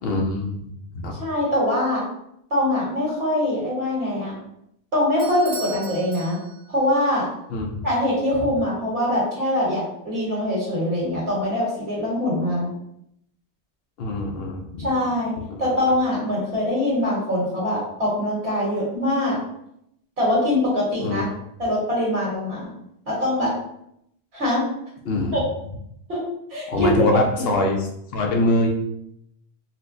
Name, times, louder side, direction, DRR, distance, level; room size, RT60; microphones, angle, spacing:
voice 1, 0.0-1.2 7.5-7.8 14.0-14.9 15.5-15.7 21.0-21.2 25.0-25.4 26.7-28.7, left 2 dB, 65° left, 1 dB, 0.8 m, -24 dB
voice 2, 1.1-2.0 2.5-4.4 4.9-6.4 6.7-7.3 7.8-12.7 14.8-15.3 15.6-19.4 20.2-21.3 21.6-22.7 23.1-23.5 24.3-24.6 25.3-25.4 26.1-26.2 26.5-27.5, left 1 dB, 70° right, -5 dB, 1.6 m, -23 dB
Bell / Doorbell, 5.2-6.9, right 4 dB, 55° right, 0.7 m, -38 dB
4.2 x 2.1 x 2.5 m, 0.76 s
omnidirectional pair, 1.1 m